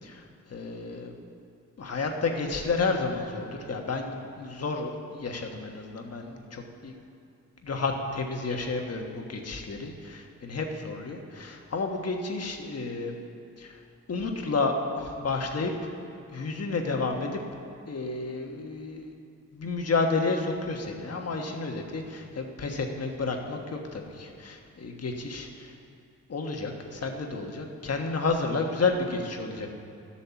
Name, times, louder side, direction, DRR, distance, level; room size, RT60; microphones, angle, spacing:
voice 1, 0.0-1.2 1.8-7.0 7.6-13.1 13.6-13.8 14.1-15.7 16.3-17.4 17.9-19.1 19.5-25.7 26.3-29.7, left 3 dB, 50° left, 3 dB, 1.3 m, -31 dB
12.0 x 8.6 x 7.0 m, 2.5 s
wide cardioid pair, 115°, 31 cm